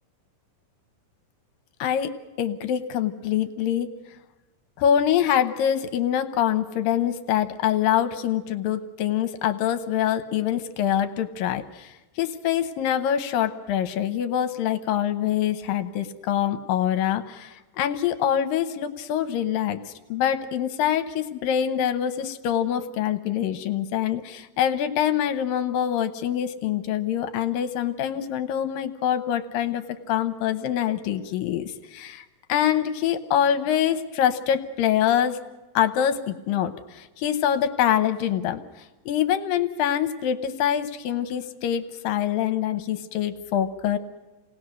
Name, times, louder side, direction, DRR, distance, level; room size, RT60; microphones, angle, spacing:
voice 1, 1.8-3.9 4.8-35.4 35.7-38.6 39.1-44.0, left 10 dB, 80° left, 10 dB, 2.5 m, -25 dB
28.5 x 18.5 x 6.3 m, 1.1 s
omnidirectional pair, 4.1 m